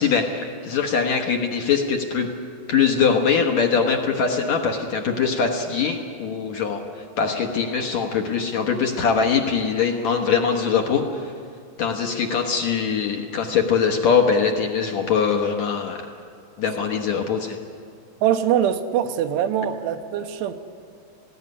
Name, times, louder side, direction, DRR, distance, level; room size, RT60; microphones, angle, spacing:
voice 1, 0.0-2.3 2.7-11.3 11.8-16.1 16.6-17.6, left 6 dB, 65° left, 3 dB, 1.9 m, -22 dB
voice 2, 18.2-20.5, right 9 dB, 85° right, 7 dB, 3.0 m, -22 dB
19.5 x 16.5 x 9.7 m, 2.3 s
omnidirectional pair, 4.9 m